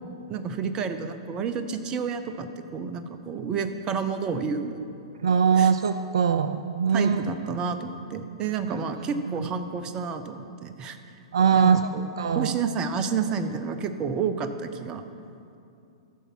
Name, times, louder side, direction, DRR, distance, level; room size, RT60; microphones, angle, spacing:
voice 1, 0.3-4.8 5.6-5.7 6.9-11.0 11.5-12.1 12.4-15.1, right 6 dB, 25° right, 9 dB, 0.6 m, -30 dB
voice 2, 5.2-7.2 9.4-9.5 11.3-11.8 12.2-12.6, right 7 dB, 65° right, 10 dB, 0.3 m, -21 dB
13.5 x 6.5 x 4.5 m, 2.6 s
figure-of-eight pair, 105°, 3 cm